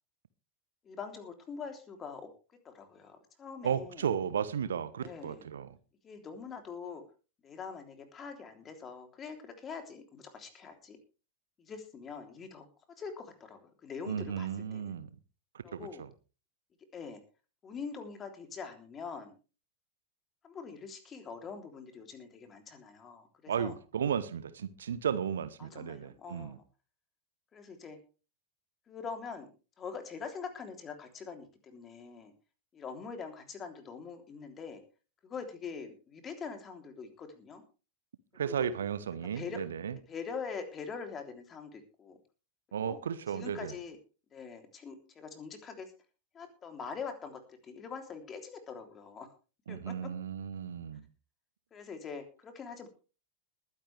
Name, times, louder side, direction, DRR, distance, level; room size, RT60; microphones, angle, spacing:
voice 1, 0.8-2.3 2.6-4.1 5.0-5.5 6.0-7.0 7.4-11.0 11.6-15.0 15.6-16.0 16.9-17.2 17.6-19.3 20.4-23.7 25.6-26.6 27.5-28.0 28.9-29.5 29.8-32.3 32.7-34.8 35.2-37.6 38.4-38.7 39.3-39.6 40.1-42.2 42.8-43.0 43.3-44.0 44.3-45.9 46.3-49.3 49.7-50.1 51.7-52.9, left 5 dB, 25° left, 3.3 m, -44 dB
voice 2, 3.6-5.8 14.1-15.1 15.7-16.1 23.5-26.6 38.3-39.9 42.7-43.7 49.7-51.0, right 8 dB, 65° right, 1.0 m, -34 dB
21.0 x 10.5 x 3.4 m
figure-of-eight pair, 90°, 0 cm